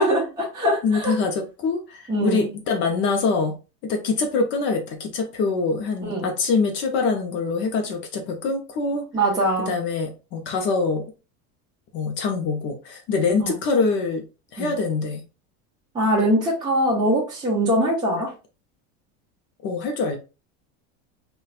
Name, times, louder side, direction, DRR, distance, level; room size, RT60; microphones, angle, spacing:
voice 1, 0.0-1.1 2.1-2.5 6.0-6.3 9.1-9.7 13.4-13.5 14.6-14.7 15.9-18.3, right 1 dB, 10° right, -5 dB, 0.9 m, -22 dB
voice 2, 0.8-3.5 3.8-9.1 9.7-11.0 11.9-14.2 14.5-15.2 19.6-20.2, left 4 dB, 35° left, 4 dB, 0.5 m, -24 dB
4.0 x 2.2 x 2.4 m, 0.30 s
supercardioid pair, 160°, 33 cm